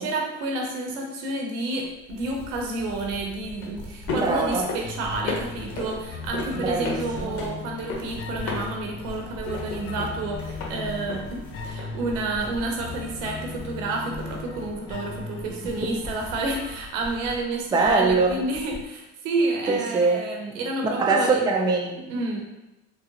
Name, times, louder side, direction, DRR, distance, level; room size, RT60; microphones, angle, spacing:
voice 1, 0.0-21.5 22.1-22.4, right 2 dB, 90° right, 1 dB, 0.7 m, -30 dB
sound 1, 1.9-18.8, left 1 dB, 5° left, 1.2 m, -43 dB
sound 2, 2.6-13.5, left 3 dB, 75° left, 0.8 m, -37 dB
voice 2, 4.1-4.7 6.6-7.4 17.7-18.5 19.7-20.2 21.0-22.1, right 3 dB, 10° right, 1 dB, 0.4 m, -23 dB
sound 3, 4.8-17.8, left 4 dB, 45° left, 0.6 m, -38 dB
3.7 x 2.0 x 2.8 m, 0.99 s
supercardioid pair, 80°, 36 cm